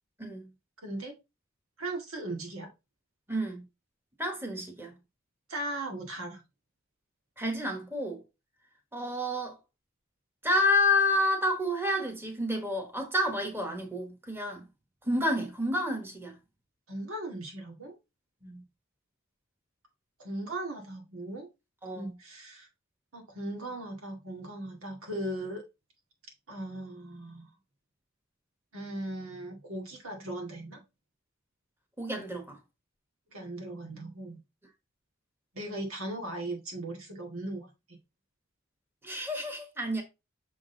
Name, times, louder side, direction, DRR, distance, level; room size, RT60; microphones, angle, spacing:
voice 1, 0.8-1.1 1.8-2.7 5.5-6.4 16.9-17.9 20.2-21.5 21.9-22.7 23.1-25.6 26.5-27.5 28.7-30.8 33.3-34.4 35.5-38.0, right 1 dB, 90° right, 2.0 m, -38 dB
voice 2, 3.3-3.6 4.2-5.0 7.4-8.2 8.9-9.6 10.4-14.6 15.0-16.3 18.4-18.6 21.8-22.1 32.0-32.6 39.0-40.0, left 1 dB, 10° right, 1.3 m, -29 dB
6.4 x 3.9 x 3.9 m
head